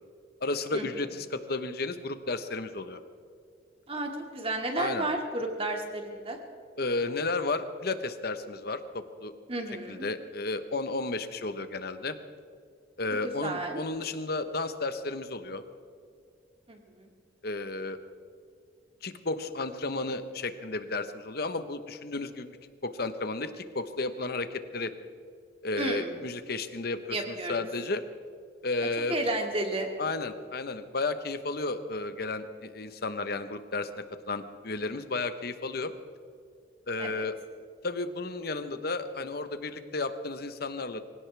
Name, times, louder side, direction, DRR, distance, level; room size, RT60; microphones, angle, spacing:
voice 1, 0.4-3.0 4.7-5.1 6.8-9.3 9.9-12.1 13.0-15.6 17.4-18.0 19.0-22.6 22.8-24.9 25.6-28.0 28.6-29.2 30.0-35.9 36.9-37.3 37.8-41.0, left 3 dB, 55° left, 9 dB, 1.1 m, -33 dB
voice 2, 3.9-6.4 9.5-10.1 13.1-13.8 16.7-17.1 25.8-26.1 27.1-27.5 29.1-29.9 37.0-37.2, right 2 dB, 30° right, 2 dB, 2.2 m, -32 dB
24.5 x 17.0 x 3.4 m, 2.4 s
head